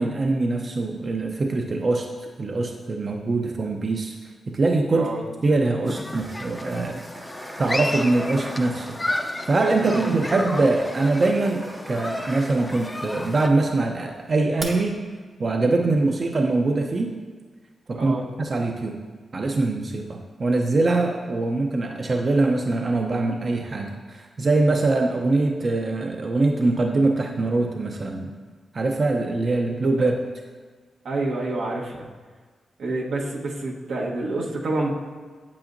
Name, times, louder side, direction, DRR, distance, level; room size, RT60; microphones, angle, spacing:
voice 1, 0.0-4.1 4.5-5.1 5.4-7.0 7.6-15.0 15.4-17.1 17.9-19.0 19.3-28.3 28.7-30.1, right 2 dB, 45° right, 2 dB, 0.6 m, -23 dB
Human group actions, 5.8-13.5, left 1 dB, 20° left, 0.5 m, -32 dB
sound 1, 6.1-13.8 14.6-14.7, right 2 dB, 65° right, 1.4 m, -41 dB
voice 2, 9.8-10.4 17.9-18.2 30.0-30.1 31.0-32.1 32.8-34.9, right 2 dB, 90° right, -3 dB, 1.2 m, -28 dB
8.5 x 7.8 x 2.6 m, 1.4 s
cardioid pair, 70°, 0 cm